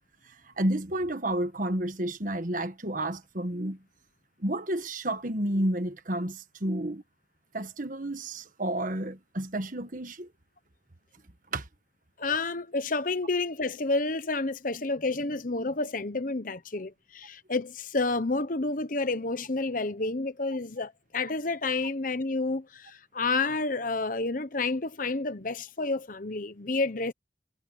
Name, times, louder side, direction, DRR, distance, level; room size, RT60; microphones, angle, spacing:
voice 1, 0.2-3.8 4.4-7.0 7.5-10.3 11.5-11.7, right 1 dB, 45° right, 1.5 m, -31 dB
voice 2, 12.2-27.1, left 3 dB, 45° left, 1.1 m, -30 dB
head